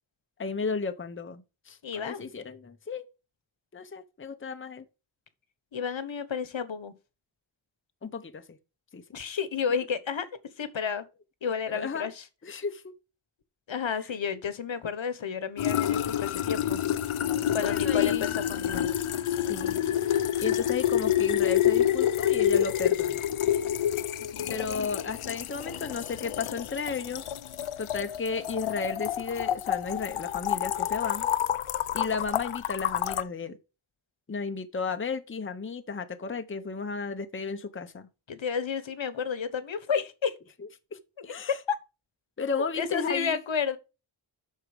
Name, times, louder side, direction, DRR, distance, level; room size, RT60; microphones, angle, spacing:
voice 1, 0.4-3.0 3.7-4.8 8.0-8.4 8.9-9.0 11.7-12.1 12.4-12.9 17.6-18.3 19.5-19.8 20.4-23.3 24.5-27.2 27.8-31.3 31.9-33.6 34.3-38.1 40.9-41.6 42.4-43.4, left 5 dB, 25° left, 0.8 m, -34 dB
voice 2, 1.8-2.3 5.7-6.9 9.1-10.3 10.6-11.1 11.4-12.2 13.7-16.8 17.5-18.9 24.2-24.6 38.3-40.3 41.2-41.8 42.7-43.8, left 6 dB, 70° left, 1.2 m, -31 dB
sound 1, 15.6-33.2, left 11 dB, 85° left, 0.7 m, -28 dB
7.9 x 6.5 x 5.0 m
wide cardioid pair, 110°, 48 cm